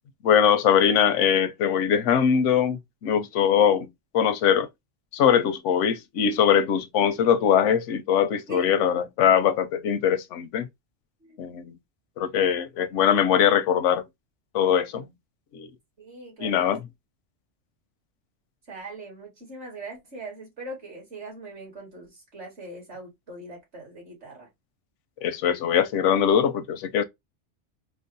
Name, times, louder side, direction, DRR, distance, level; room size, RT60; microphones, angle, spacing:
voice 1, 0.2-3.9 4.1-4.7 5.1-10.7 11.4-11.7 12.2-14.0 14.5-15.1 15.5-15.7 16.4-16.8 25.2-27.0, left 8 dB, 85° left, 0.9 m, -22 dB
voice 2, 16.0-16.7 18.7-24.5, right 2 dB, 65° right, 2.2 m, -41 dB
4.5 x 2.0 x 2.5 m
omnidirectional pair, 1.2 m